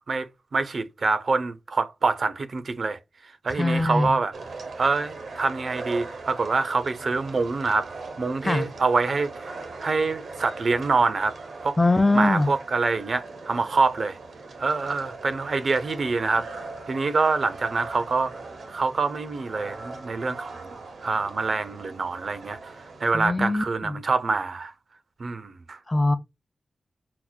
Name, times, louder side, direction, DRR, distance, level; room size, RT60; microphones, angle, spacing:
voice 1, 0.0-3.0 3.4-4.3 4.8-7.9 8.2-9.5 9.8-11.3 11.6-11.8 12.1-14.2 14.6-16.5 16.9-18.3 18.7-20.7 21.0-24.7 25.2-25.8, right 4 dB, 65° right, 0.5 m, -25 dB
voice 2, 3.6-4.2 8.4-8.7 11.8-12.5 23.1-24.0 25.9-26.2, left 2 dB, 20° left, 0.5 m, -22 dB
sound 1, 4.3-23.1, right 3 dB, 90° right, 0.9 m, -40 dB
5.8 x 2.0 x 2.4 m
cardioid pair, 70°, 0 cm